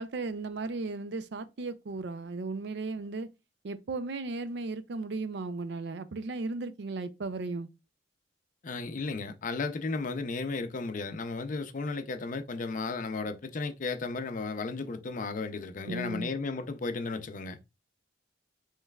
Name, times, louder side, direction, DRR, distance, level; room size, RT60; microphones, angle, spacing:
voice 1, 0.0-3.3 3.6-7.7 15.9-16.3, right 3 dB, 65° right, 0.4 m, -35 dB
voice 2, 8.6-17.6, left 3 dB, 45° left, 0.5 m, -34 dB
5.4 x 3.2 x 2.3 m
head